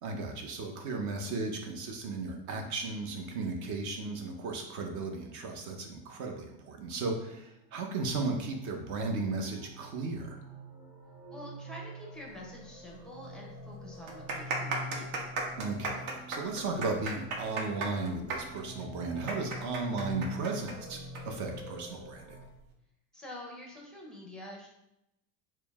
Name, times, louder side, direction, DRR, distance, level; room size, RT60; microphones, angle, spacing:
voice 1, 0.0-10.4 15.6-22.4, right 3 dB, 40° right, 2 dB, 0.7 m, -35 dB
sound 1, 7.7-22.5, left 1 dB, 15° right, 1.0 m, -46 dB
voice 2, 11.3-15.1 23.1-24.7, left 1 dB, ahead, -2 dB, 0.6 m, -46 dB
sound 2, 12.9-13.0 13.2-13.3 14.0-21.2 21.5-21.6 22.4-22.6, right 3 dB, 65° right, 1.0 m, -35 dB
4.4 x 2.1 x 3.4 m, 0.85 s
supercardioid pair, 130°, 47 cm